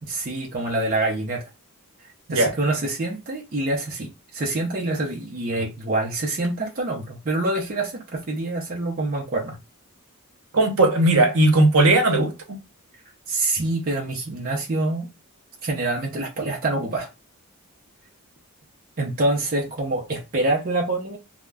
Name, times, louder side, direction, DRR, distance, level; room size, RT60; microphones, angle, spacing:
voice 1, 0.0-1.5 2.3-9.6 13.3-15.1 15.6-17.1 19.0-21.2, right 2 dB, 40° right, 0.5 m, -26 dB
voice 2, 10.5-12.6, right 2 dB, 65° right, 0.8 m, -18 dB
2.3 x 2.1 x 3.3 m
head